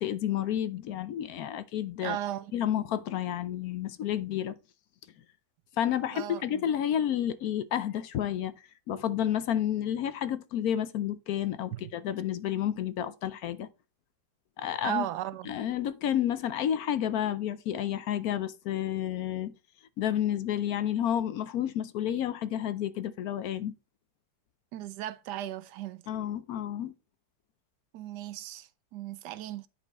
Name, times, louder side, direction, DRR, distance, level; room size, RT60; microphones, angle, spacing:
voice 1, 0.0-2.2 2.5-4.6 5.8-8.5 8.9-13.7 14.6-15.1 15.5-19.5 20.0-23.7 26.1-26.9, left 10 dB, 70° left, 1.0 m, -30 dB
voice 2, 2.0-2.6 6.1-6.7 11.7-11.9 14.8-15.5 24.7-26.0 27.9-29.7, right 13 dB, 80° right, 1.2 m, -36 dB
9.8 x 4.2 x 4.1 m
omnidirectional pair, 1.8 m